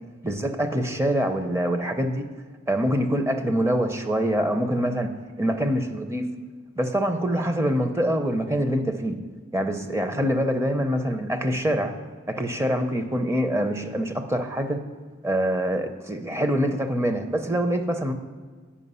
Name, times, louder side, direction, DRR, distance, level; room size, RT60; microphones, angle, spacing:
voice 1, 0.2-2.2 2.7-5.1 5.4-6.3 6.8-9.2 9.5-11.9 12.3-14.8 15.2-18.1, equal, 15° right, 7 dB, 0.5 m, -25 dB
8.5 x 5.4 x 5.5 m, 1.5 s
head